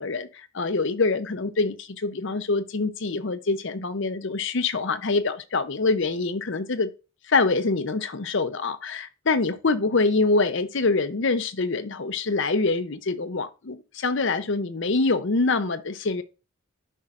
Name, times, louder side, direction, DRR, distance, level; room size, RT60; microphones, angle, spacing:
voice 1, 0.0-6.9 7.3-16.2, left 3 dB, 55° left, 0.7 m, -25 dB
10.0 x 5.5 x 2.5 m
head